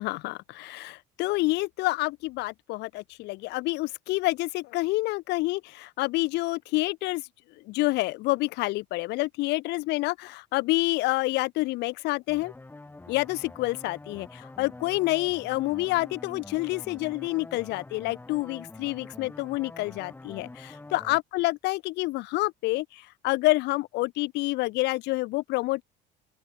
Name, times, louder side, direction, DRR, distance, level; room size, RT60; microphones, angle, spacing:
voice 1, 0.0-7.2 7.7-12.5 13.1-25.8, left 21 dB, 70° left, 0.5 m, -28 dB
sound 1, 12.3-21.2, left 2 dB, 10° left, 2.2 m, -46 dB
open air
cardioid pair, 115°, 19 cm